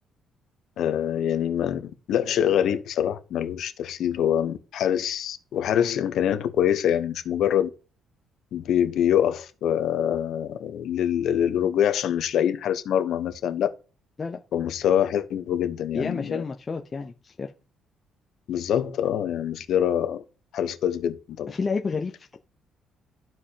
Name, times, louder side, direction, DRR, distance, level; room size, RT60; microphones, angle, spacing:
voice 1, 0.8-7.7 8.5-13.7 14.5-16.4 18.5-20.2 20.5-21.5, left 9 dB, 65° left, 0.9 m, -25 dB
voice 2, 15.9-17.5 21.5-22.4, left 4 dB, 25° left, 0.7 m, -30 dB
13.5 x 4.8 x 2.8 m
cardioid pair, 140°, 0 cm